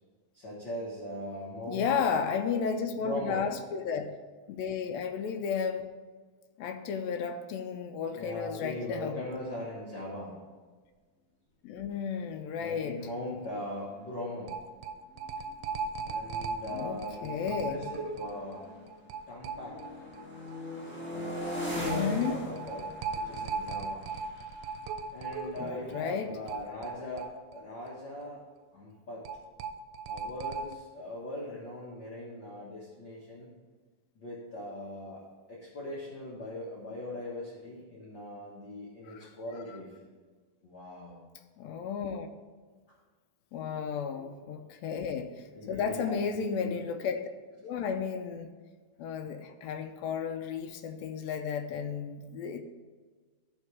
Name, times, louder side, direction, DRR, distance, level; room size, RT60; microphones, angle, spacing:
voice 1, 0.3-2.3 3.0-3.5 8.1-10.4 12.5-14.5 16.0-18.6 19.3-20.1 21.1-24.1 25.1-28.4 28.7-29.2 30.1-33.5 34.1-39.9 40.6-41.2 44.2-44.4 45.5-46.2 46.6-46.9, left 1 dB, 45° left, -7 dB, 1.7 m, -40 dB
voice 2, 1.7-4.1 4.5-5.9 6.6-9.2 11.6-13.0 16.7-17.8 21.8-22.4 25.5-26.3 39.0-39.3 39.7-39.8 41.6-42.3 43.5-47.2 47.6-48.5 49.0-52.6, left 6 dB, 85° left, 6 dB, 1.5 m, -33 dB
sound 1, 13.1-13.2 13.5-13.6 14.5-20.2 20.5-20.6 21.9-28.0 28.3-28.4 29.2-30.7, right 4 dB, 85° right, 2.1 m, -38 dB
sound 2, 13.7-13.8 14.0-14.4 15.1-19.0 19.4-26.0, left 1 dB, 5° left, 1.3 m, -40 dB
13.0 x 4.5 x 4.7 m, 1.4 s
omnidirectional pair, 3.6 m